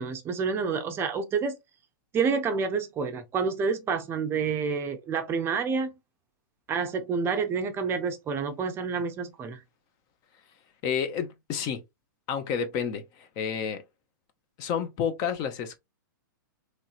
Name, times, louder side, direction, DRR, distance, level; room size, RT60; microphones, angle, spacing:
voice 1, 0.0-1.5 2.1-5.9 6.7-9.6, right 5 dB, 20° right, 0.5 m, -28 dB
voice 2, 10.8-11.8 12.3-13.8 14.6-15.8, left 7 dB, 35° left, 0.6 m, -30 dB
3.1 x 2.7 x 2.3 m
hypercardioid pair, 125°, 11 cm